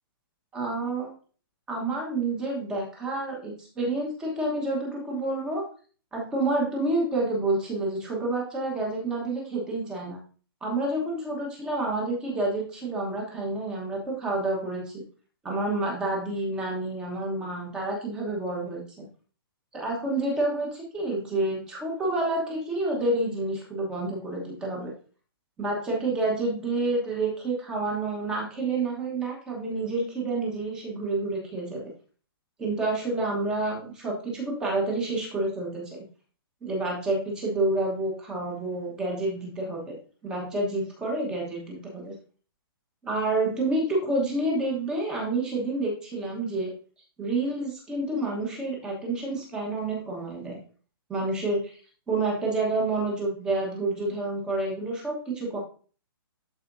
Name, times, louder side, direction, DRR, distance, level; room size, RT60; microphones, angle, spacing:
voice 1, 0.5-1.1 1.7-5.6 6.1-10.2 10.6-15.0 15.4-19.1 19.7-24.9 25.6-31.8 32.6-36.0 36.6-40.0 40.2-42.1 43.0-46.7 47.2-50.6 51.1-51.7 52.1-55.6, right 2 dB, 5° right, -2 dB, 1.1 m, -29 dB
12.0 x 4.3 x 2.6 m, 0.39 s
hypercardioid pair, 180°, 13 cm